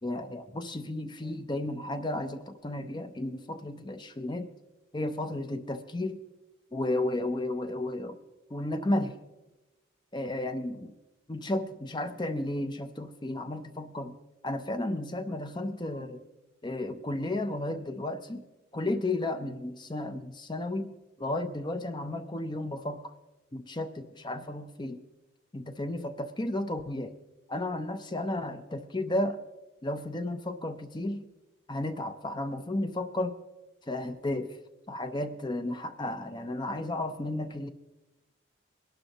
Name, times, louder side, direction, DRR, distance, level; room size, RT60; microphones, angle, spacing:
voice 1, 0.0-4.5 4.9-6.2 6.7-8.2 8.5-9.2 10.1-10.9 11.3-14.2 14.4-16.2 16.6-18.4 18.7-23.1 23.5-25.0 25.5-27.1 27.5-29.4 29.8-31.3 31.7-33.4 33.9-34.6 34.9-37.7, left 1 dB, 20° left, 9 dB, 0.6 m, -33 dB
21.5 x 11.5 x 2.9 m, 1.0 s
head